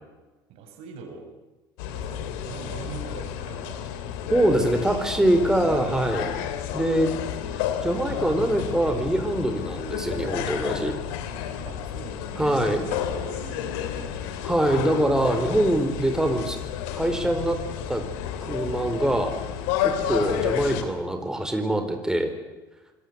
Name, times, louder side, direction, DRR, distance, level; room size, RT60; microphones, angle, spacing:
voice 1, 0.5-1.3 1.9-3.8 4.5-5.4 5.7-6.0 7.6-7.8 11.6-14.3, right 5 dB, 60° right, 5 dB, 6.5 m, -42 dB
sound 1, 1.8-20.8, left 9 dB, 70° left, 3.2 m, -31 dB
voice 2, 4.3-6.3 6.7-7.1 7.5-11.0 12.4-12.9 14.4-16.6 16.9-17.6 17.9-18.0 18.4-19.3 19.8-22.3, right 1 dB, 5° right, 6 dB, 4.4 m, -24 dB
26.5 x 22.5 x 8.2 m, 1.2 s
hypercardioid pair, 65°, 11 cm